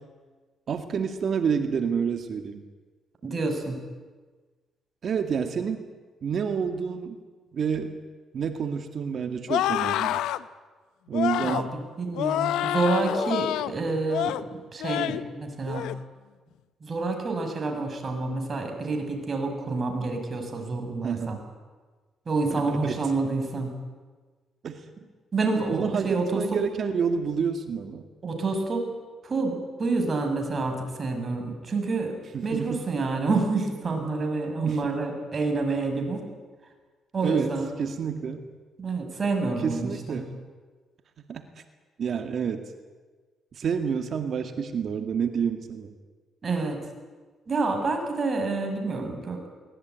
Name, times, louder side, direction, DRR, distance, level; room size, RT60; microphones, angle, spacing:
voice 1, 0.7-2.6 5.0-5.8 6.2-7.2 7.5-8.0 8.3-10.2 11.1-11.6 21.0-21.4 22.5-23.0 24.6-24.8 25.5-28.1 32.3-32.8 34.6-34.8 37.2-38.5 39.6-40.4 41.3-41.4 42.0-42.7 43.5-45.9, right 6 dB, 55° right, 7 dB, 2.0 m, -29 dB
voice 2, 3.2-3.8 11.4-11.7 12.0-14.4 14.7-15.9 16.8-21.4 22.3-23.7 25.3-26.6 28.2-28.9 29.2-32.2 32.4-36.2 37.1-37.7 38.8-40.2 46.4-46.8 47.5-49.5, right 3 dB, 40° right, 4 dB, 6.2 m, -28 dB
sound 1, 9.5-10.4 11.1-11.7 12.1-13.7 14.1-14.4 14.8-15.2 15.6-16.0, left 13 dB, 90° left, 0.8 m, -27 dB
23.0 x 19.5 x 9.4 m, 1.4 s
cardioid pair, 90°, 0 cm